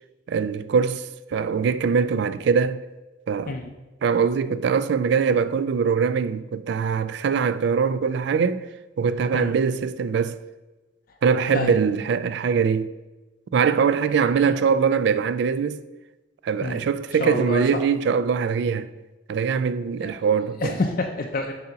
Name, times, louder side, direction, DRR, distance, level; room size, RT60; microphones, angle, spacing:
voice 1, 0.3-2.8 3.3-3.5 4.0-8.6 9.0-10.4 11.2-12.9 13.5-15.8 16.4-18.9 19.3-20.7, right 6 dB, 65° right, 0.3 m, -22 dB
voice 2, 17.2-17.8 20.0-20.1 20.6-21.5, left 2 dB, 50° left, 0.5 m, -27 dB
7.6 x 2.8 x 5.6 m
head